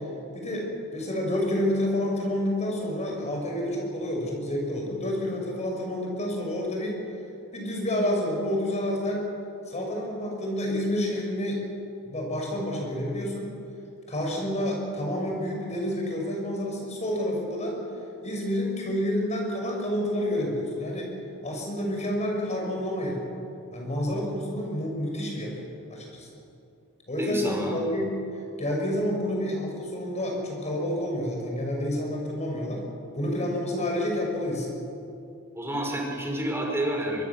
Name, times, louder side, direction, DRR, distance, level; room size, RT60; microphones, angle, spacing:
voice 1, 0.3-0.7 0.9-7.0 7.5-9.3 9.7-11.6 12.0-13.5 14.1-17.8 18.2-21.1 21.4-23.2 23.7-25.5 25.9-26.3 27.1-28.2 28.6-32.8 33.1-34.7, left 1 dB, 30° left, 0 dB, 6.1 m, -29 dB
voice 2, 27.2-27.8 35.5-37.2, right 1 dB, 10° right, -1 dB, 5.1 m, -29 dB
24.5 x 20.5 x 7.2 m, 2.7 s
head